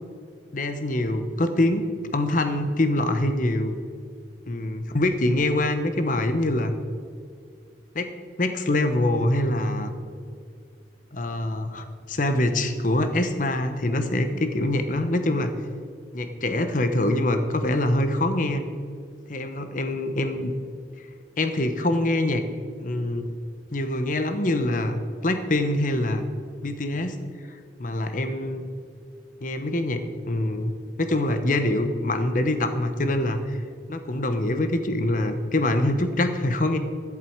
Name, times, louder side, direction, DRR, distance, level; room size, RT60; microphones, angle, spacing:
voice 1, 0.5-3.8 4.5-6.7 7.9-8.1 8.4-9.9 11.1-15.5 16.1-18.7 19.3-20.5 21.4-22.5 22.8-23.3 23.7-26.3 26.6-27.1 27.8-28.6 29.4-30.7 31.0-33.6 33.9-36.8, left 1 dB, 45° left, 8 dB, 1.0 m, -24 dB
15.5 x 11.0 x 4.6 m, 2.3 s
head